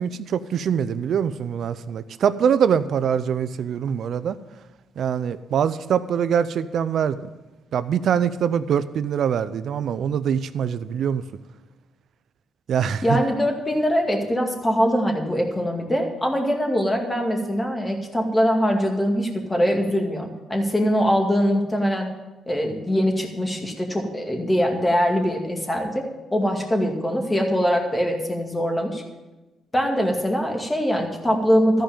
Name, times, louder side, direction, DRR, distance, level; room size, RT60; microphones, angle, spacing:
voice 1, 0.0-4.4 5.0-7.3 7.7-11.2 12.7-13.2, right 8 dB, 65° right, 13 dB, 0.6 m, -23 dB
voice 2, 13.0-22.1 22.5-26.0 26.3-29.0 29.7-31.8, equal, 15° left, 2 dB, 2.2 m, -22 dB
14.0 x 5.2 x 9.1 m, 1.1 s
cardioid pair, 90°, 0 cm